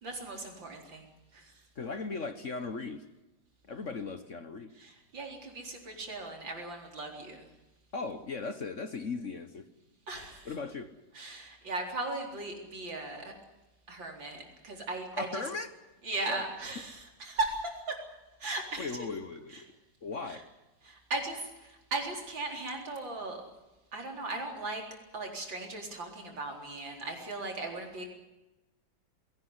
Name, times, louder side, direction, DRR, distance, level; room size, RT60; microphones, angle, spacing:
voice 1, 0.0-1.6 4.8-7.5 10.1-10.5 11.1-13.3 13.9-15.4 16.0-18.0 18.4-19.1 19.5-19.6 20.3-20.4 20.8-23.4 23.9-24.8 25.1-28.0, right 2 dB, 75° right, 2 dB, 4.8 m, -37 dB
voice 2, 1.7-3.0 3.6-4.7 7.9-9.7 10.4-10.9 15.1-15.7 16.3-16.4 18.8-19.7 20.0-20.4, left 4 dB, 45° left, 10 dB, 1.3 m, -37 dB
21.0 x 18.0 x 9.8 m, 1.1 s
omnidirectional pair, 2.1 m